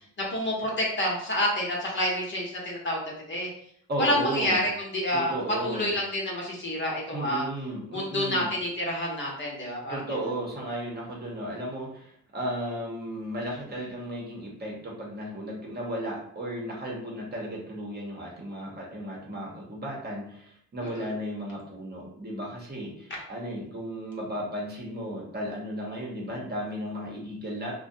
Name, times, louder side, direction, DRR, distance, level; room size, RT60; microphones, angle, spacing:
voice 1, 0.2-3.5 4.0-5.4 5.6-7.4 7.9-10.2 20.8-21.1, left 1 dB, 40° left, -3 dB, 0.9 m, -28 dB
voice 2, 3.9-4.6 5.1-5.9 7.1-8.5 9.9-27.7, right 1 dB, 35° right, -3 dB, 0.9 m, -34 dB
2.5 x 2.2 x 2.6 m, 0.67 s
cardioid pair, 90°, 30 cm